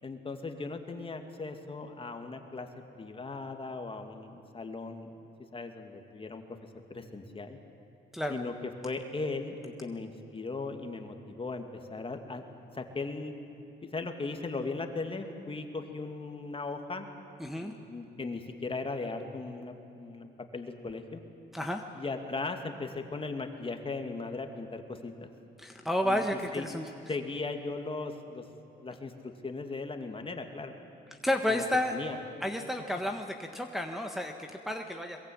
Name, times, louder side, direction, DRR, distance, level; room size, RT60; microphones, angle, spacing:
voice 1, 0.0-2.7 2.9-5.1 5.5-6.6 6.9-7.6 8.3-8.5 8.8-11.6 11.9-13.3 13.8-17.1 17.6-21.2 21.9-25.3 26.0-26.7 27.1-28.4 28.8-30.7 31.5-31.6 31.9-32.2, left 3 dB, 25° left, 5 dB, 2.3 m, -38 dB
voice 2, 17.4-17.7 21.5-21.8 25.6-26.8 31.1-31.9 32.4-35.2, left 1 dB, ahead, 2 dB, 1.4 m, -31 dB
22.5 x 22.0 x 8.8 m, 2.9 s
cardioid pair, 90°, 20 cm